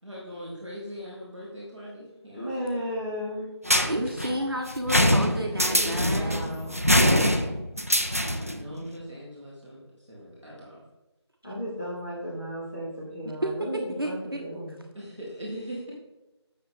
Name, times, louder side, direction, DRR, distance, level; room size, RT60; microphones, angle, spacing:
voice 1, 0.0-2.8 5.2-6.4 8.3-10.8 14.9-15.9, equal, 5° right, -23 dB, 1.4 m, -41 dB
voice 2, 2.3-3.5 5.7-6.8 11.4-14.9, equal, 30° left, -11 dB, 2.4 m, -34 dB
sound 1, 3.7-8.6, equal, 30° right, 0.5 m, -24 dB
voice 3, 3.8-6.5 13.4-13.5 14.0-14.4, equal, 55° right, 2 dB, 1.1 m, -31 dB
9.3 x 6.6 x 3.7 m, 1.0 s
figure-of-eight pair, 175°, 15 cm